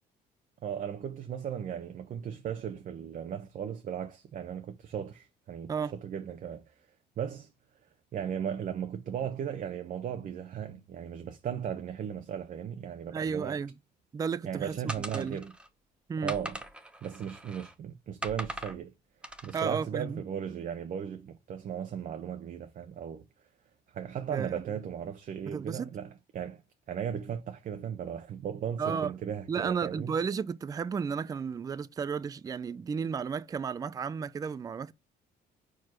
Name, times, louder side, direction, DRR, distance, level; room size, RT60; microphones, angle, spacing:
voice 1, 0.6-6.7 7.2-7.5 8.1-13.6 14.4-15.5 16.2-16.6 17.0-18.9 19.4-23.3 23.9-26.6 26.9-30.1, right 8 dB, 50° right, 0.8 m, -36 dB
voice 2, 13.1-13.7 14.1-14.7 15.1-15.4 16.1-16.4 19.5-20.2 24.3-24.7 25.5-25.9 28.8-29.1 29.5-34.9, right 6 dB, 20° right, 0.4 m, -33 dB
sound 1, 14.9-15.7 16.3-17.7 18.2-18.8 19.2-19.7, right 1 dB, 5° right, 0.9 m, -40 dB
4.8 x 4.6 x 5.9 m
cardioid pair, 110°, 17 cm